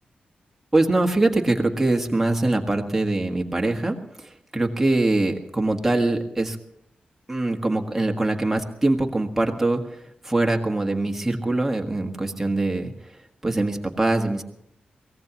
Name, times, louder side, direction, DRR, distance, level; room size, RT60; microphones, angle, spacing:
voice 1, 0.7-6.6 7.3-9.8 10.2-12.9 13.4-14.4, right 2 dB, 10° right, 2 dB, 1.5 m, -23 dB
23.5 x 18.0 x 3.0 m, 0.80 s
wide cardioid pair, 170°, 3 cm